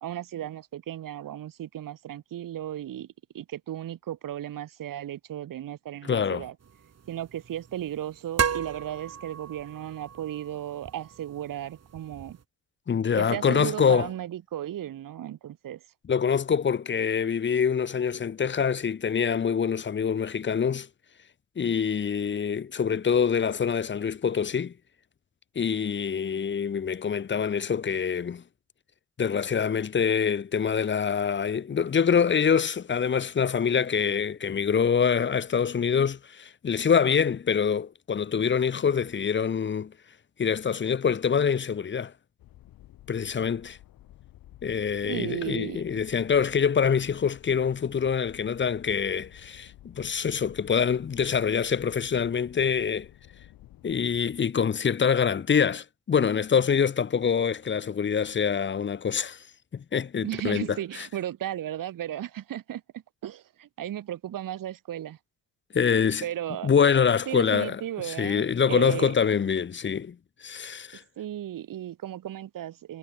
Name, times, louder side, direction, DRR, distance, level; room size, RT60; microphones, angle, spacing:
voice 1, 0.0-3.1 3.3-6.5 7.1-12.4 13.2-15.8 45.0-46.0 60.2-65.2 66.2-66.7 67.3-69.1 71.2-73.0, right 11 dB, 70° right, 2.5 m, -35 dB
voice 2, 6.0-6.5 12.9-14.1 16.1-20.9 21.6-24.7 25.6-28.4 29.2-39.9 40.4-42.1 43.1-43.8 44.6-53.1 53.8-59.4 59.7-61.1 65.7-66.2 66.6-70.2 70.4-71.0, left 7 dB, 35° left, 0.8 m, -25 dB
sound 1, 6.6-12.4, right 7 dB, 50° right, 2.3 m, -35 dB
sound 2, 42.4-54.4, left 14 dB, 85° left, 7.5 m, -52 dB
supercardioid pair, 65°, 34 cm